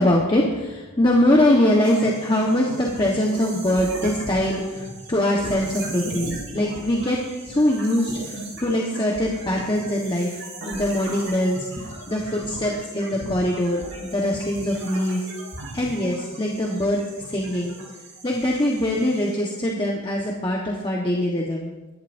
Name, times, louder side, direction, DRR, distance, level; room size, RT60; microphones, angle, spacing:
voice 1, 0.0-7.2 7.4-15.2 15.7-17.0 17.3-17.8 18.2-21.7, left 1 dB, 20° left, -2 dB, 1.3 m, -23 dB
sound 1, 1.8-19.3, right 2 dB, 65° right, 5.2 m, -37 dB
23.0 x 11.5 x 2.7 m, 1.1 s
head